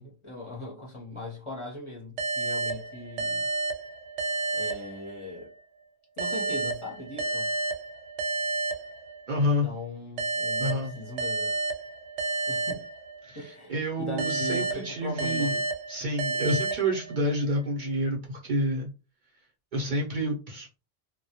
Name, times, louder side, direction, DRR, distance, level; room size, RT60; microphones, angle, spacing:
voice 1, 0.0-3.5 4.5-5.5 6.2-7.5 9.4-11.6 12.5-12.8 13.3-15.6, left 2 dB, 35° left, 0.6 m, -39 dB
sound 1, 2.2-5.5 6.2-9.5 10.2-13.5 14.2-17.5, right 3 dB, 85° right, 0.9 m, -31 dB
voice 2, 9.3-9.7 10.6-10.9 13.2-15.6 15.9-18.9 19.7-20.8, equal, 55° right, 0.6 m, -29 dB
2.1 x 2.1 x 2.7 m
omnidirectional pair, 1.1 m